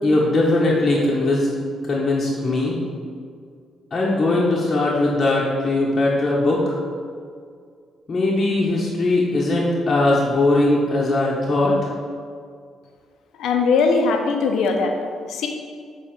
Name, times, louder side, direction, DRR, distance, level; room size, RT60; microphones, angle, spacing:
voice 1, 0.0-1.5 1.8-2.8 3.9-6.7 8.1-11.7, left 2 dB, 40° left, -5 dB, 1.4 m, -20 dB
voice 2, 13.4-15.0 15.3-15.5, left 4 dB, 80° left, 3 dB, 1.0 m, -20 dB
8.6 x 4.1 x 6.0 m, 2.1 s
cardioid pair, 90°, 0 cm